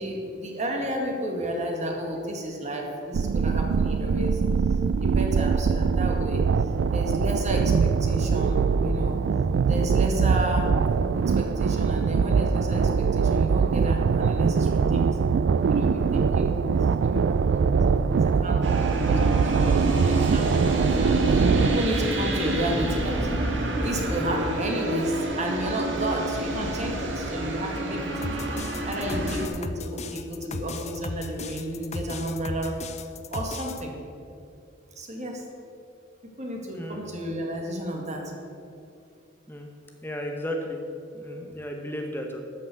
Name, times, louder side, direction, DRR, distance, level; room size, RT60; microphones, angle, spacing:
voice 1, 0.0-4.4 4.7-6.4 6.9-9.2 9.7-10.7 11.2-15.1 15.7-23.3 23.8-28.3 28.8-32.8 33.3-34.0 35.0-35.4 36.4-38.3, right 1 dB, 40° right, 1 dB, 2.0 m, -32 dB
sound 1, 3.1-21.8, right 5 dB, 70° right, 0.3 m, -23 dB
sound 2, 18.6-29.5, right 1 dB, 85° right, 1.7 m, -28 dB
sound 3, 28.2-33.8, left 3 dB, 40° left, 0.6 m, -35 dB
voice 2, 40.0-40.8 41.1-42.4, equal, 10° left, 2 dB, 0.8 m, -34 dB
13.0 x 5.7 x 7.8 m, 2.5 s
head